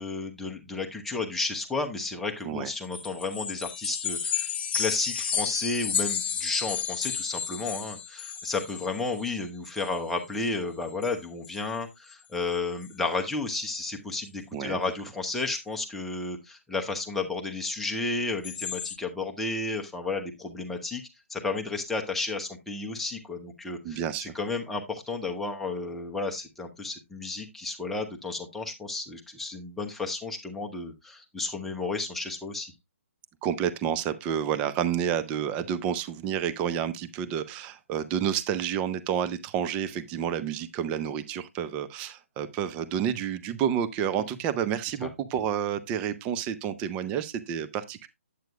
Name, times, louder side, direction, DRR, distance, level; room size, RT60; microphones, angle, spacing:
voice 1, 0.0-21.0 21.3-32.7 45.0-45.1, left 3 dB, 5° left, 0.8 m, -32 dB
sound 1, 2.7-9.4 9.6-10.0 10.3-10.5 10.9-11.1 11.4-11.6 12.1-12.2 12.5-12.9 18.4-19.0, left 7 dB, 45° left, 0.5 m, -32 dB
voice 2, 14.5-14.9 23.8-24.3 33.4-48.1, right 9 dB, 15° right, 0.5 m, -29 dB
8.9 x 8.3 x 2.3 m
figure-of-eight pair, 140°, 8 cm